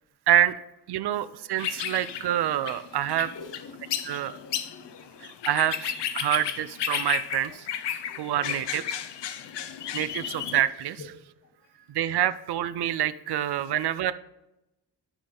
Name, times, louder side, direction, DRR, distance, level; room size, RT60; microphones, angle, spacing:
voice 1, 0.3-0.6 0.9-3.3 4.0-4.3 5.4-7.6 8.2-8.8 9.9-11.0 11.9-14.1, right 11 dB, 70° right, 14 dB, 0.5 m, -26 dB
voice 2, 1.0-1.3 2.2-2.4 3.3-3.7 4.3-5.9 6.5-6.6 7.4-7.6 8.0-8.7 9.7-9.9 10.2-10.3 11.0-11.1, left 4 dB, 50° left, 5 dB, 1.2 m, -48 dB
sound 1, 1.6-10.6, left 9 dB, 75° left, 0.7 m, -33 dB
12.0 x 4.2 x 3.8 m, 0.92 s
cardioid pair, 80°, 42 cm